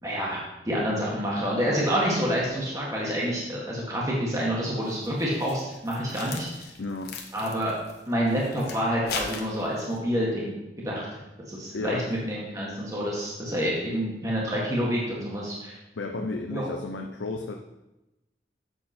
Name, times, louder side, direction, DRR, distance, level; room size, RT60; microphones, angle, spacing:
voice 1, 0.0-6.5 7.3-7.7 8.1-10.5 10.8-11.2 11.5-12.0 12.3-15.8 16.2-16.7, equal, 20° right, -5 dB, 1.5 m, -28 dB
sound 1, 4.8-10.0, left 4 dB, 60° left, 1.2 m, -39 dB
voice 2, 6.8-7.2 11.7-12.1 16.0-17.6, left 3 dB, 90° left, 3 dB, 0.6 m, -33 dB
7.7 x 6.6 x 4.3 m, 0.97 s
head